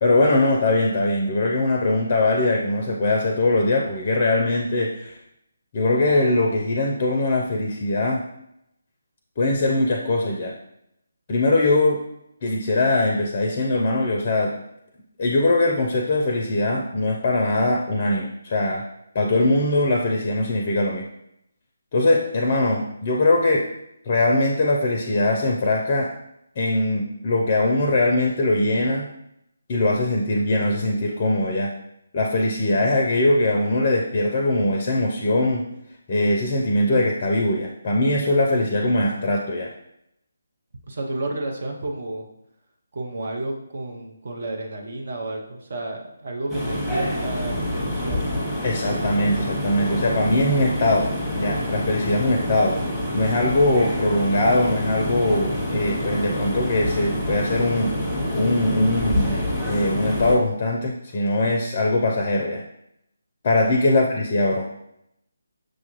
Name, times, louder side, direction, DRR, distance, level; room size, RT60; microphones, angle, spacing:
voice 1, 0.0-5.2 5.7-8.2 9.4-10.6 11.3-12.0 12.4-14.5 15.2-18.8 19.1-21.1 21.9-23.7 24.1-26.1 26.6-29.1 29.7-31.7 32.1-35.7 36.1-39.7 48.6-52.8 53.1-57.9 58.3-62.6 63.4-64.7, left 2 dB, 35° left, 1 dB, 0.5 m, -21 dB
voice 2, 40.9-42.3 42.9-48.3 63.9-64.0, right 2 dB, 55° right, 1 dB, 0.7 m, -31 dB
sound 1, 46.5-60.4, left 1 dB, ahead, 0.9 m, -27 dB
6.2 x 2.3 x 3.0 m, 0.79 s
figure-of-eight pair, 150°, 0 cm